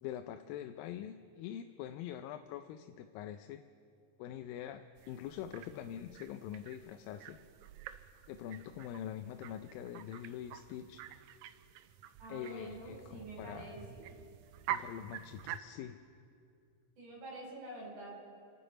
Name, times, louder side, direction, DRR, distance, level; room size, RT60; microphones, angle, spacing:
voice 1, 0.0-3.6 4.2-7.4 8.3-11.0 12.3-13.7 14.7-16.0, left 10 dB, 85° left, 8 dB, 2.3 m, -44 dB
sound 1, 5.0-15.6, right 12 dB, 85° right, 1.7 m, -47 dB
voice 2, 12.2-14.1 17.0-18.2, right 2 dB, 60° right, -3 dB, 6.2 m, -47 dB
29.0 x 9.9 x 4.9 m, 2.4 s
omnidirectional pair, 4.0 m